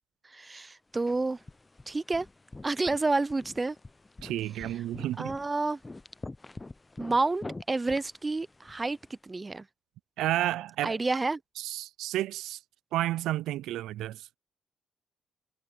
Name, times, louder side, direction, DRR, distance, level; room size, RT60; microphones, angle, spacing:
voice 1, 0.3-1.4 1.9-2.3 2.6-3.8 5.2-5.8 7.0-9.7 10.8-11.4, right 3 dB, 25° right, 0.5 m, -29 dB
sound 1, 0.9-9.1, left 2 dB, 20° left, 0.5 m, -46 dB
voice 2, 4.2-5.4 10.2-11.0 11.6-12.6 12.9-14.3, right 14 dB, 85° right, 0.3 m, -31 dB
supercardioid pair, 65°, 0 cm